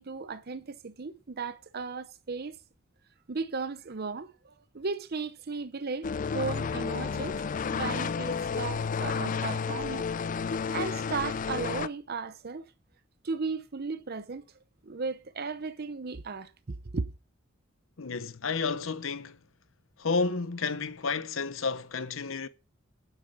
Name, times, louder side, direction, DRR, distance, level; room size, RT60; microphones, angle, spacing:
voice 1, 0.0-2.6 3.3-6.1 6.3-7.4 7.7-10.1 10.7-12.7 13.2-14.5 14.8-17.1, right 4 dB, 50° right, 0.7 m, -35 dB
sound 1, 6.0-11.9, left 5 dB, 40° left, 0.4 m, -31 dB
voice 2, 18.0-19.4 20.0-22.5, left 4 dB, 80° left, 0.9 m, -31 dB
9.0 x 8.3 x 5.0 m
head